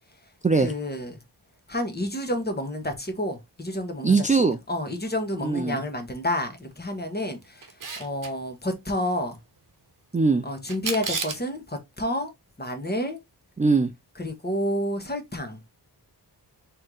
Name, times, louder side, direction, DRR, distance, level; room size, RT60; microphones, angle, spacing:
voice 1, 0.6-1.2 1.7-4.2 4.7-9.4 10.4-12.3 12.6-13.2 14.2-15.6, left 1 dB, 25° left, 1.2 m, -30 dB
voice 2, 4.0-4.6 5.4-5.8 10.1-10.4 13.6-13.9, right 4 dB, 20° right, 0.4 m, -21 dB
Camera, 7.6-8.3 10.7-11.5, right 4 dB, 50° right, 1.0 m, -31 dB
4.4 x 3.2 x 3.8 m
wide cardioid pair, 100°, 41 cm